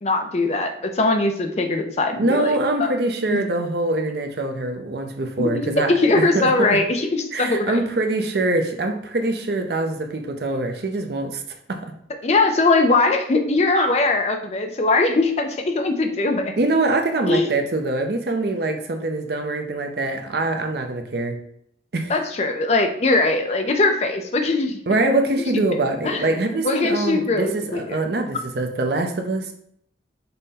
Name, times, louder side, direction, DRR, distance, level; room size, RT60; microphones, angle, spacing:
voice 1, 0.0-2.9 5.4-7.8 12.2-16.5 17.3-17.5 22.1-24.8 25.5-25.6 26.0-26.4 26.6-28.0, left 2 dB, 35° left, 5 dB, 0.4 m, -21 dB
voice 2, 2.2-6.8 7.3-11.4 11.7-11.8 16.6-21.4 21.9-22.1 24.9-29.5, right 2 dB, 55° right, 5 dB, 0.6 m, -24 dB
5.4 x 2.2 x 4.1 m, 0.69 s
head